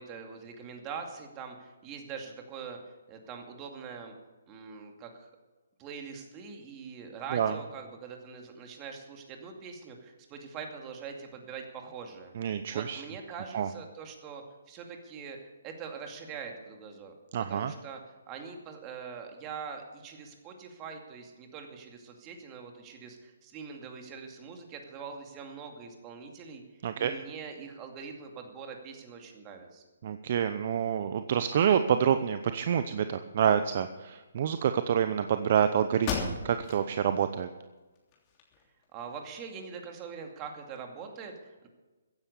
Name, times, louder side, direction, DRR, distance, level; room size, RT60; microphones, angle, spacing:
voice 1, 0.0-2.8 3.1-4.1 4.5-5.3 5.8-15.4 15.6-17.1 17.5-18.0 18.3-26.6 27.0-29.8 38.9-41.7, right 6 dB, 25° right, 3 dB, 2.4 m, -43 dB
voice 2, 12.4-13.0 13.5-13.7 17.3-17.7 26.8-27.1 30.0-37.5, right 8 dB, 45° right, 10 dB, 0.7 m, -27 dB
sound 1, 35.5-35.6 36.0-36.8 37.3-37.4 37.9-38.8, left 6 dB, 30° left, 3.2 m, -35 dB
15.0 x 10.0 x 6.8 m, 1.2 s
hypercardioid pair, 145°, 0 cm